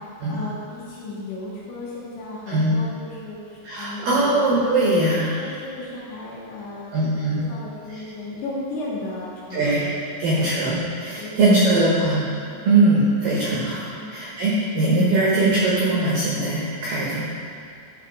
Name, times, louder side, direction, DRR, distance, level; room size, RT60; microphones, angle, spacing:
voice 1, 0.3-4.3 5.4-9.8 10.3-10.5 11.2-11.9 13.9-14.0, left 2 dB, 70° left, -7 dB, 2.9 m, -35 dB
voice 2, 3.6-5.5 6.9-7.4 7.9-8.0 9.5-9.9 10.2-12.3 12.6-17.2, right 2 dB, 80° right, -7 dB, 2.0 m, -21 dB
12.5 x 4.3 x 5.0 m, 2.5 s
omnidirectional pair, 5.9 m